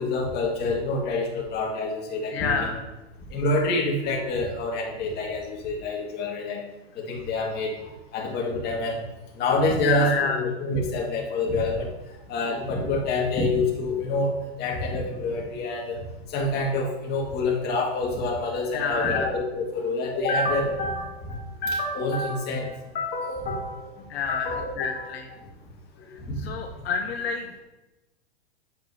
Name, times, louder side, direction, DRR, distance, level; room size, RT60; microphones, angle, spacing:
voice 1, 0.0-2.8 3.3-6.6 7.0-9.1 9.4-11.9 12.3-16.0 16.3-23.9 24.3-25.1 26.0-26.4, left 2 dB, 30° left, -1 dB, 1.8 m, -27 dB
voice 2, 2.3-2.7 9.8-10.4 18.7-19.3 24.1-24.5 24.8-25.3 26.4-27.6, left 6 dB, 65° left, 2 dB, 1.0 m, -28 dB
8.8 x 7.5 x 2.7 m, 1.0 s
hypercardioid pair, 135°, 33 cm